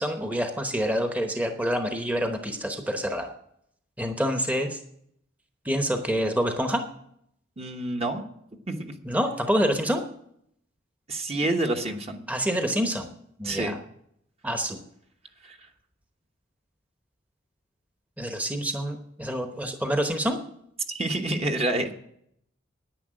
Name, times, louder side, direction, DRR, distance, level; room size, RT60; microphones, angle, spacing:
voice 1, 0.0-3.3 4.0-4.8 5.6-6.8 9.0-10.0 12.3-13.1 13.4-13.8 14.4-14.8 18.2-20.4, equal, 10° right, 5 dB, 1.0 m, -27 dB
voice 2, 7.6-8.2 8.7-9.0 11.1-12.2 13.4-13.8 15.4-15.6 20.9-21.9, right 2 dB, 30° right, 4 dB, 1.1 m, -28 dB
10.0 x 9.7 x 7.6 m, 0.72 s
head